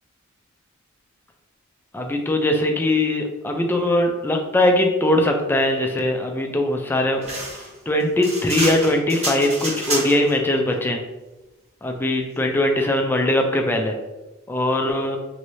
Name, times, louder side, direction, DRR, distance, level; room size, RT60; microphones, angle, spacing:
voice 1, 1.9-7.2 7.9-11.0 11.8-13.9 14.5-15.2, left 1 dB, 10° left, 2 dB, 0.4 m, -21 dB
sound 1, 7.2-10.4, right 2 dB, 30° right, 0.9 m, -28 dB
3.0 x 2.7 x 3.1 m, 1.1 s
head